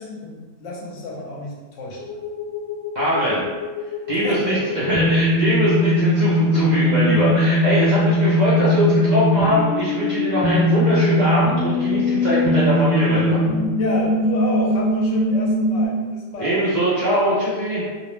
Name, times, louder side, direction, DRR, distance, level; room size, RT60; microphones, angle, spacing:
voice 1, 0.0-2.2 4.2-4.7 13.8-16.6 17.6-17.9, left 2 dB, 75° left, -3 dB, 0.9 m, -30 dB
sound 1, 2.0-15.9, left 1 dB, 45° left, 0.7 m, -20 dB
voice 2, 2.9-3.4 4.1-13.4 16.4-17.8, right 1 dB, 55° right, -9 dB, 0.5 m, -21 dB
2.4 x 2.0 x 3.0 m, 1.3 s
omnidirectional pair, 1.3 m